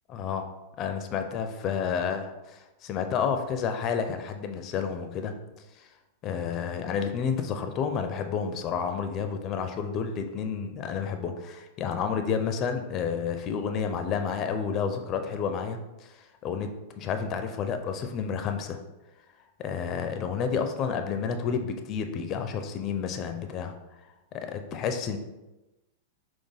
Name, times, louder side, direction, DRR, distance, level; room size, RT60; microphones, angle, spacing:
voice 1, 0.1-0.5 0.8-2.2 2.8-5.3 5.7-5.9 6.2-18.8 19.6-23.7 24.3-25.2, left 6 dB, 35° left, 6 dB, 0.4 m, -30 dB
4.4 x 3.0 x 3.4 m, 1.0 s
hypercardioid pair, 130°, 0 cm